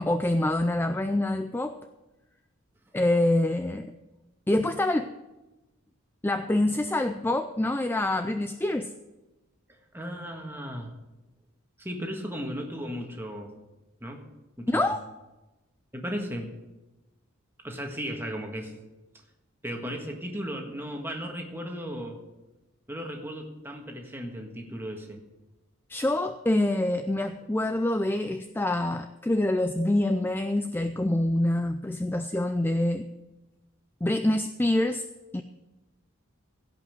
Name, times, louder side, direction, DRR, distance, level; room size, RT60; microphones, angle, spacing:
voice 1, 0.0-1.8 2.9-3.9 4.5-5.1 6.2-8.9 14.7-15.0 25.9-33.1 34.0-35.0 35.3-35.4, left 1 dB, 10° left, 9 dB, 0.3 m, -26 dB
voice 2, 9.9-10.9 11.8-13.5 14.0-14.3 14.6-14.9 15.9-16.5 17.6-18.7 19.6-22.2 22.9-25.2, equal, 10° right, 2 dB, 1.6 m, -35 dB
16.5 x 5.6 x 7.9 m, 1.1 s
head